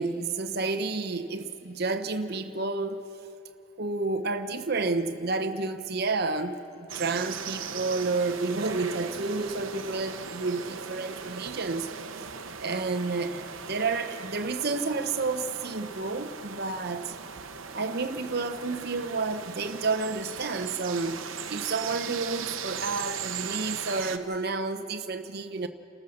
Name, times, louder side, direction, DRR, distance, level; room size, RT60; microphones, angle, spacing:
voice 1, 0.0-3.1 3.8-11.9 12.2-12.3 12.6-17.1 17.7-21.2 21.5-25.7, right 3 dB, 50° right, 0.9 m, -30 dB
sound 1, 6.9-24.2, right 6 dB, 75° right, 0.9 m, -38 dB
29.0 x 14.5 x 6.5 m
head